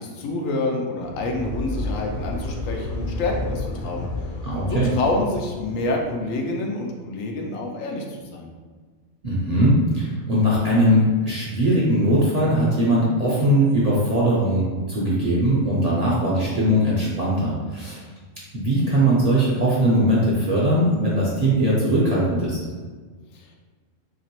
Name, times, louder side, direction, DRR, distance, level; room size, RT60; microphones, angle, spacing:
voice 1, 0.0-4.1 4.7-8.5 23.3-23.5, left 2 dB, 90° left, 1 dB, 1.0 m, -27 dB
sound 1, 1.0-6.2, left 1 dB, 60° left, 0.6 m, -31 dB
voice 2, 4.4-4.9 9.2-18.0 18.5-22.6, right 1 dB, 45° right, -6 dB, 0.5 m, -20 dB
2.9 x 2.9 x 2.9 m, 1.5 s
omnidirectional pair, 1.3 m